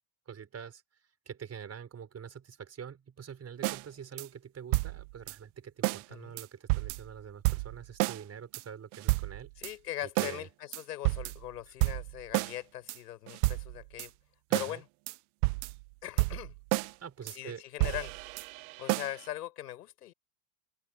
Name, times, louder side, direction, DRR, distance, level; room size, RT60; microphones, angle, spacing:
voice 1, 0.3-0.8 1.3-9.5 10.2-10.5 14.5-14.8 17.0-17.6, right 7 dB, 30° right, 5.9 m, -45 dB
Ballad drum beat, 3.6-3.8 4.2-4.3 4.7-5.3 5.8-6.0 6.4-6.5 6.7-7.1 7.4-8.2 8.5-8.6 8.9-9.7 10.2-10.4 10.7-11.5 11.8-12.5 12.9-13.0 13.3-14.1 14.5-14.7 15.1-15.2 15.4-15.8 16.2-16.9 17.3-17.4 17.8-19.3, right 25 dB, 70° right, 0.9 m, -30 dB
voice 2, 9.6-14.1 14.5-14.9 16.0-16.5 17.3-18.1 18.8-20.1, left 13 dB, 90° left, 6.4 m, -40 dB
open air
hypercardioid pair, 90°, 46 cm